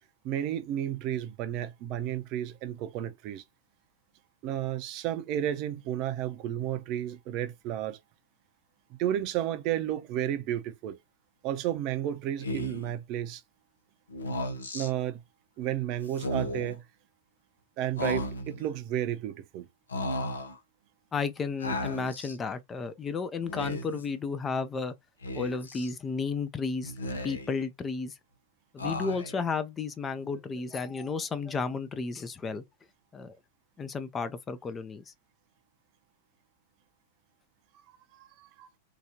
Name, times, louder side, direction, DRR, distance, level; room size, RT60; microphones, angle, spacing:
voice 1, 0.2-3.4 4.4-8.0 8.9-11.0 11.4-13.4 14.7-15.2 15.6-16.8 17.8-19.7 37.9-38.7, right 11 dB, 45° right, 0.6 m, -32 dB
Speech, 12.4-12.9 14.1-14.9 16.1-16.8 18.0-18.7 19.9-20.6 21.6-22.4 23.4-24.1 25.2-25.9 26.8-27.6 28.8-29.5, left 1 dB, 85° left, 0.6 m, -35 dB
voice 2, 21.1-24.9 25.3-26.9 27.2-28.1 28.7-32.6 33.1-33.4 33.8-35.0, left 4 dB, 20° left, 0.4 m, -33 dB
2.8 x 2.3 x 2.8 m
hypercardioid pair, 100°, 0 cm